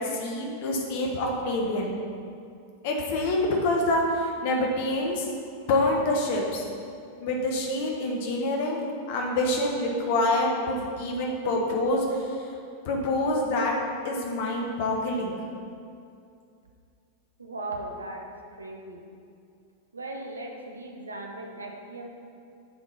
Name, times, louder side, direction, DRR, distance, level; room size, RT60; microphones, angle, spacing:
voice 1, 0.0-2.0 2.8-5.3 5.7-6.6 7.2-8.8 9.1-12.6 12.8-13.7 14.0-15.4, left 1 dB, 50° left, 0 dB, 1.1 m, -26 dB
voice 2, 17.4-18.3 18.6-19.0 19.9-22.1, right 2 dB, 80° right, 2 dB, 0.8 m, -37 dB
7.8 x 3.8 x 5.5 m, 2.4 s
figure-of-eight pair, 90°, 0 cm